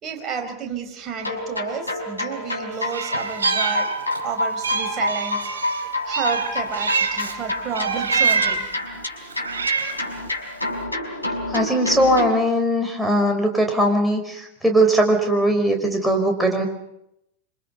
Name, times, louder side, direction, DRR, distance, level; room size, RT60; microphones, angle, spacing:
voice 1, 0.0-3.9 4.2-5.5 6.1-8.7, right 6 dB, 30° right, 4 dB, 4.9 m, -31 dB
sound 1, 1.2-12.3, left 1 dB, 80° left, 4.9 m, -28 dB
Meow, 2.9-4.3 4.6-7.4 7.7-8.7 9.3-10.1, right 5 dB, 70° right, 4.1 m, -25 dB
voice 2, 11.5-16.7, right 1 dB, ahead, 2 dB, 5.5 m, -20 dB
27.0 x 27.0 x 5.6 m, 0.79 s
figure-of-eight pair, 90°, 0 cm